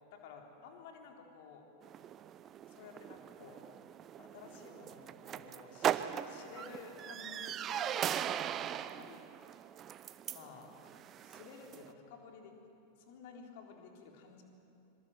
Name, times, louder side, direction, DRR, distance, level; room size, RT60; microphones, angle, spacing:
voice 1, 0.1-1.7 2.7-3.6 4.2-8.4 8.7-9.2 10.3-10.7 11.2-12.5 13.0-14.4, left 5 dB, 50° left, 2 dB, 3.9 m, -53 dB
sound 1, 1.8-11.9, right 10 dB, 30° right, 0.8 m, -40 dB
25.5 x 23.5 x 8.0 m, 2.8 s
figure-of-eight pair, 90°, 0 cm